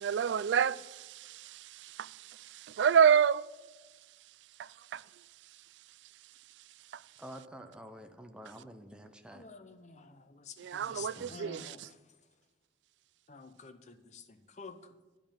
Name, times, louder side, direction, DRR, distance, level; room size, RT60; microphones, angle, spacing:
voice 1, 0.0-1.6 2.0-2.1 2.8-3.4 4.9-5.0 10.6-11.9, right 7 dB, 75° right, 0.3 m, -27 dB
voice 2, 7.2-9.4 10.9-11.3, equal, 5° right, 0.6 m, -49 dB
voice 3, 9.3-11.8 13.3-14.8, left 4 dB, 40° left, 0.7 m, -49 dB
9.7 x 5.3 x 7.2 m
head